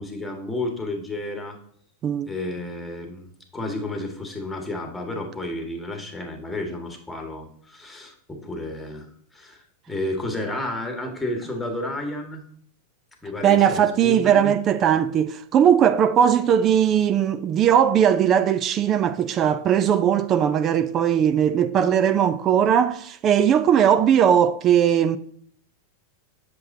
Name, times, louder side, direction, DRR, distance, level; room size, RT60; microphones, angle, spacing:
voice 1, 0.0-1.6 2.3-12.4 13.2-14.5, left 1 dB, 5° left, 1.7 m, -31 dB
voice 2, 13.4-25.2, right 9 dB, 35° right, 0.5 m, -19 dB
7.7 x 6.8 x 2.7 m
hypercardioid pair, 110°, 0 cm